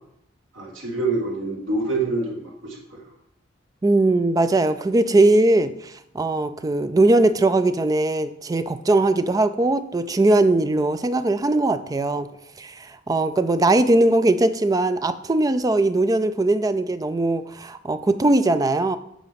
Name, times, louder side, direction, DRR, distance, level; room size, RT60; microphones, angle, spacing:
voice 1, 0.5-3.0, right 3 dB, 85° right, -2 dB, 2.1 m, -26 dB
voice 2, 3.8-12.3 12.6-19.0, right 2 dB, 20° right, 11 dB, 0.3 m, -20 dB
8.3 x 3.7 x 5.2 m, 0.76 s
head